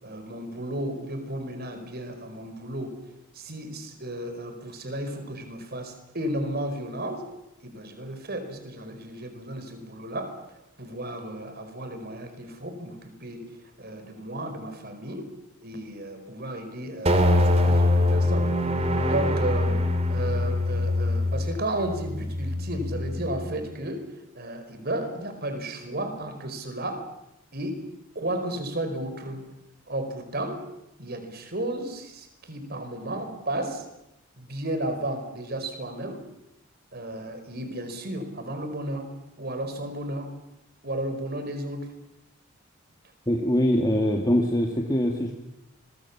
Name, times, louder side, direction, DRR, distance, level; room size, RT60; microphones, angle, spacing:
voice 1, 0.0-3.0 3.3-7.2 7.6-10.3 10.8-13.4 13.8-15.3 15.6-19.8 20.1-24.0 24.3-27.0 27.5-27.8 28.1-29.4 29.9-30.6 31.0-33.8 34.4-36.2 36.9-39.1 39.4-40.3 40.8-41.9, right 1 dB, 50° right, 7 dB, 4.9 m, -33 dB
sound 1, 17.1-23.5, left 1 dB, 30° right, 2.9 m, -24 dB
voice 2, 43.3-45.4, equal, 20° left, 1 dB, 2.2 m, -23 dB
29.5 x 23.0 x 7.3 m, 0.86 s
head